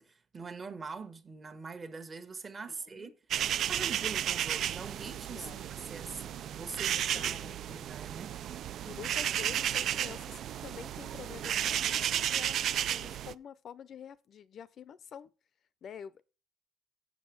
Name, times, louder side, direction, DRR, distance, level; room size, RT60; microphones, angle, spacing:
voice 1, 0.0-3.2 3.7-8.3, right 4 dB, 30° right, 1.2 m, -44 dB
voice 2, 2.7-3.1 5.3-5.7 6.9-7.8 8.9-15.3 15.8-16.2, left 8 dB, 50° left, 0.5 m, -48 dB
sound 1, 3.3-13.3, right 10 dB, 60° right, 0.4 m, -33 dB
7.5 x 6.9 x 6.1 m
cardioid pair, 130°, 0 cm